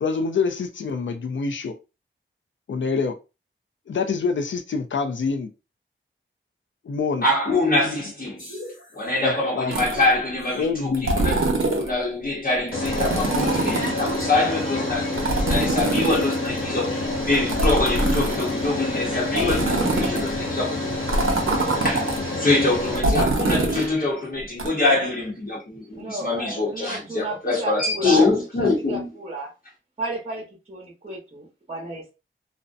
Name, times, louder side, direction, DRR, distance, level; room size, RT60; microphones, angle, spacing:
voice 1, 0.0-1.7 2.7-3.2 3.9-5.5 6.8-7.2 7.9-8.0 9.2-9.7 10.5-11.1, left 5 dB, 65° left, 8 dB, 0.4 m, -26 dB
voice 2, 7.2-8.5 8.9-15.1 15.4-17.0 17.2-21.2 21.8-22.1 22.4-29.1, left 2 dB, 45° left, -3 dB, 0.8 m, -24 dB
sound 1, 8.4-8.8 10.5-10.6 12.7-23.0, left 2 dB, 80° left, 1.4 m, -28 dB
sound 2, 9.7-10.1 10.9-11.9 12.9-14.2 15.2-16.6 17.3-18.7 19.3-20.3 21.1-22.2 23.0-23.9 24.6-24.7, right 2 dB, 80° right, 0.7 m, -23 dB
voice 3, 25.9-28.3 28.6-29.5 30.0-32.1, right 1 dB, 30° right, -1 dB, 0.9 m, -32 dB
2.6 x 2.1 x 2.4 m, 0.28 s
wide cardioid pair, 85°, 21 cm